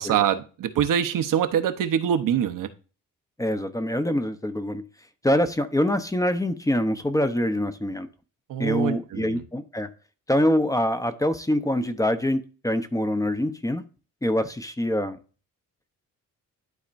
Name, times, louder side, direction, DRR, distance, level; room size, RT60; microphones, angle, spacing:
voice 1, 0.0-2.7 8.5-9.4, right 9 dB, 80° right, 8 dB, 0.9 m, -24 dB
voice 2, 3.4-4.8 5.2-8.1 8.6-9.9 10.3-13.8 14.2-15.2, left 1 dB, 10° left, 9 dB, 0.7 m, -24 dB
11.5 x 4.3 x 2.5 m, 0.35 s
cardioid pair, 110°, 32 cm